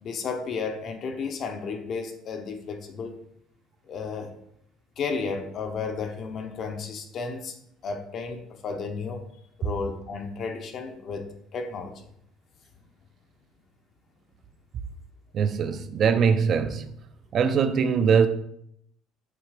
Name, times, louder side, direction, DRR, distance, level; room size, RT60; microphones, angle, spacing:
voice 1, 0.0-3.2 3.9-4.3 5.0-7.5 7.8-9.2 9.6-12.0, left 5 dB, 45° left, 0.8 m, -33 dB
voice 2, 15.3-16.9 17.3-18.3, right 6 dB, 40° right, 0.5 m, -22 dB
7.5 x 2.9 x 4.8 m
cardioid pair, 145°, 0 cm